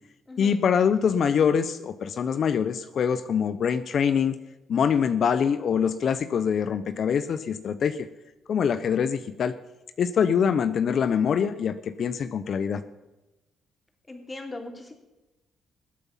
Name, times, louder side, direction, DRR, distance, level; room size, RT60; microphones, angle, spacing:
voice 1, 0.4-4.4 4.7-8.1 8.5-9.6 10.0-12.8, left 7 dB, 60° left, 12 dB, 0.8 m, -24 dB
voice 2, 14.1-14.9, left 2 dB, 20° left, 3 dB, 3.4 m, -39 dB
21.5 x 8.2 x 5.7 m, 1.0 s
cardioid pair, 90°, 0 cm